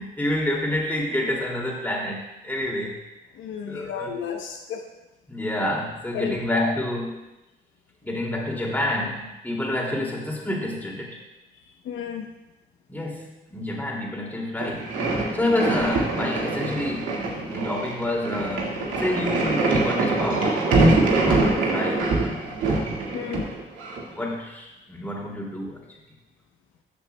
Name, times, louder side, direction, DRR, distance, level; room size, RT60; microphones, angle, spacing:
voice 1, 0.0-3.0 3.7-4.1 5.3-7.2 8.0-11.2 12.9-22.6 24.1-25.8, left 1 dB, 10° left, -2 dB, 2.6 m, -28 dB
voice 2, 3.3-4.8 6.1-6.7 11.8-12.3 15.5-15.6 23.1-23.5, left 7 dB, 75° left, 2 dB, 0.9 m, -32 dB
sound 1, 14.6-24.0, right 2 dB, 85° right, 1.9 m, -24 dB
14.5 x 7.1 x 2.3 m, 0.98 s
cardioid pair, 90°, 20 cm